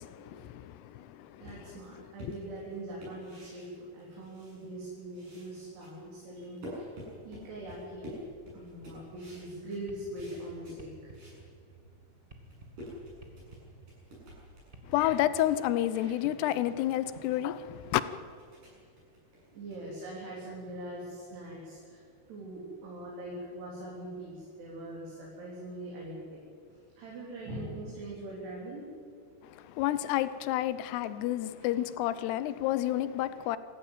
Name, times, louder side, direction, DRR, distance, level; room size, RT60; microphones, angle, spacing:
voice 1, 0.0-1.8 2.2-2.3 14.8-18.0 29.4-33.6, left 13 dB, 85° left, 2.9 m, -30 dB
voice 2, 1.4-6.9 7.2-8.2 8.5-11.1 19.5-22.0 22.3-26.4 26.7-28.9, right 1 dB, 80° right, 5.8 m, -42 dB
sound 1, 1.5-4.9 5.1-11.4 11.9-12.0 12.3-20.4, equal, 50° right, 8.8 m, -50 dB
sound 2, 8.7-17.6, right 3 dB, 20° right, 1.6 m, -54 dB
26.0 x 14.5 x 9.0 m
omnidirectional pair, 4.7 m